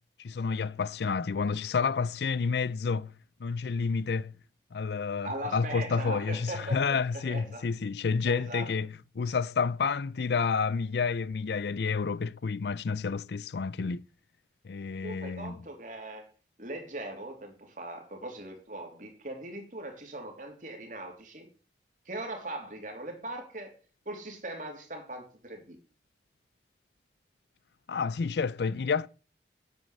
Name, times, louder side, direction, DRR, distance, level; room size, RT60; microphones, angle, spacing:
voice 1, 0.2-3.1 3.4-4.3 4.7-14.0 14.6-15.6 27.9-29.1, left 5 dB, 75° left, 0.4 m, -30 dB
voice 2, 5.2-7.7 8.3-8.7 15.0-16.3 16.6-21.5 22.0-23.7 24.0-25.8, right 1 dB, 45° right, 3.1 m, -40 dB
9.4 x 7.9 x 7.8 m
head